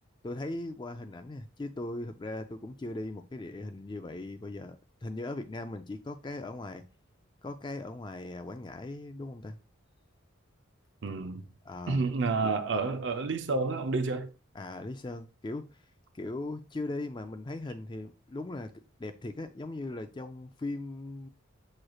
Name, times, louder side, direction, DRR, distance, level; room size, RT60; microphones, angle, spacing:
voice 1, 0.2-4.8 5.0-6.8 7.4-9.6 11.7-12.0 12.4-12.5 14.5-15.8 16.1-21.3, left 2 dB, 20° left, 0.3 m, -39 dB
voice 2, 11.0-11.4 11.9-14.3, right 3 dB, 60° right, 0.5 m, -29 dB
6.2 x 3.1 x 2.3 m
head